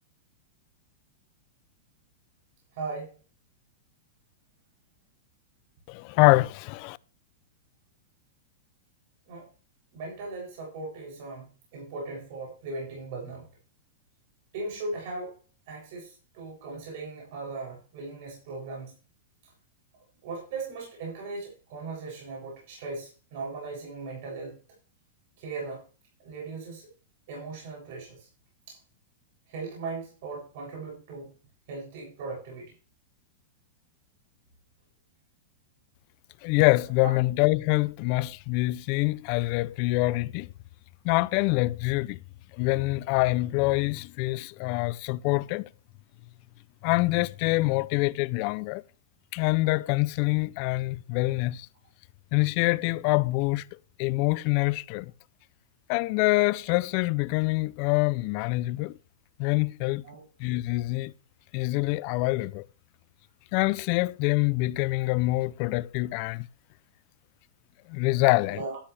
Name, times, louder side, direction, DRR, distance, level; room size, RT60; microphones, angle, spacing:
voice 1, 2.7-3.2 9.3-9.5 9.9-13.5 14.5-15.4 15.7-18.9 20.2-24.6 25.4-25.8 26.2-26.9 27.3-28.3 28.7-28.8 29.5-31.3 31.7-32.7 37.0-37.1 60.0-60.2 68.5-68.8, right 3 dB, 60° right, 7.2 m, -38 dB
voice 2, 5.9-7.0 36.4-40.5 41.0-42.2 42.6-45.6 46.8-48.8 49.3-51.7 52.3-53.6 54.0-55.1 55.9-58.9 59.4-60.0 60.4-61.1 61.5-62.7 63.5-66.5 67.9-68.6, left 22 dB, 45° left, 0.5 m, -25 dB
13.0 x 11.0 x 3.4 m
supercardioid pair, 145°, 0 cm